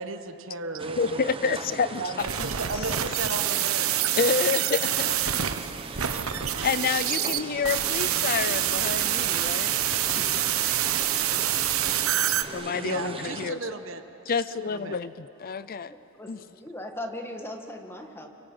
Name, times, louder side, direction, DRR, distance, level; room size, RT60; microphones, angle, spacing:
voice 1, 0.0-1.6 1.9-3.9 5.4-5.5 12.8-14.0 14.3-15.0, right 3 dB, 65° right, 8 dB, 1.4 m, -35 dB
sound 1, 0.8-13.5, right 3 dB, 25° right, 1.2 m, -39 dB
voice 2, 1.0-2.3 4.2-5.2 6.0-6.2 6.6-9.7 10.1-10.3 12.5-13.6 14.3-15.9 16.3-16.4, left 5 dB, 45° left, 15 dB, 0.5 m, -28 dB
sound 2, 2.2-12.4, right 11 dB, 90° right, 1.0 m, -26 dB
voice 3, 16.2-18.3, left 1 dB, 10° left, 4 dB, 1.8 m, -38 dB
30.0 x 24.0 x 7.9 m, 3.0 s
head